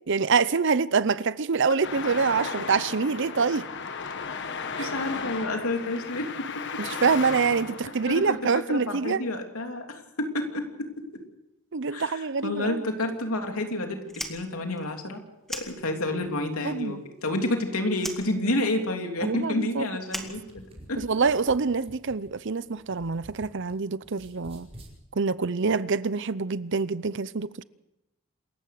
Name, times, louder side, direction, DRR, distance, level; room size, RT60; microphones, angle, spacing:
voice 1, 0.1-3.7 4.8-4.9 6.8-9.2 11.7-12.8 16.6-17.0 19.2-19.9 20.2-20.3 21.0-24.7 25.2-27.6, right 5 dB, 55° right, 0.7 m, -26 dB
Traffic noise roadway noise, 1.8-8.4, left 5 dB, 55° left, 1.4 m, -35 dB
voice 2, 4.8-6.8 8.1-10.9 11.9-14.0 14.3-15.2 15.5-21.0, left 1 dB, 85° left, 3.1 m, -30 dB
Fire, 14.0-16.3 16.6-17.6 17.9-21.1, equal, ahead, 2.2 m, -39 dB
sound 1, 20.3-23.7 24.0-24.9, equal, 30° right, 5.2 m, -49 dB
27.5 x 14.5 x 6.7 m
head